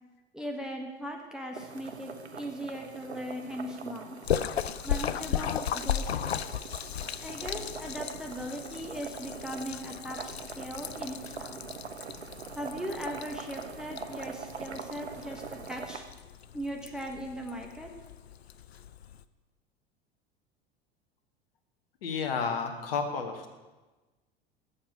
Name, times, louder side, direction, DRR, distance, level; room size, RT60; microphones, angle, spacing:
voice 1, 0.3-4.2 4.8-6.5 7.2-11.6 12.5-16.0 16.5-17.9, equal, ahead, 0 dB, 1.3 m, -39 dB
sound 1, 1.5-16.0, right 5 dB, 85° right, 0.7 m, -43 dB
Splash splatter, 4.2-19.2, left 9 dB, 80° left, 0.5 m, -36 dB
voice 2, 22.0-23.6, left 5 dB, 65° left, 6 dB, 1.5 m, -31 dB
7.3 x 7.0 x 8.2 m, 1.2 s
figure-of-eight pair, 75°, 31 cm